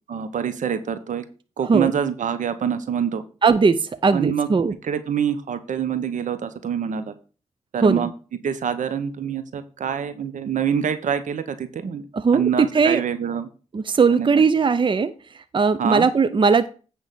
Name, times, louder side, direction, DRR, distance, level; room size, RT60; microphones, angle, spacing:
voice 1, 0.1-1.2 1.6-3.2 4.1-4.5 4.8-7.1 7.7-8.1 8.4-12.0 12.3-13.5 14.2-14.3 15.8-16.1, right 8 dB, 75° right, 11 dB, 1.0 m, -25 dB
voice 2, 3.4-4.7 7.8-8.1 12.1-13.0 13.7-16.7, right 5 dB, 40° right, 12 dB, 0.6 m, -19 dB
9.1 x 3.6 x 6.9 m, 0.36 s
cardioid pair, 55°, 13 cm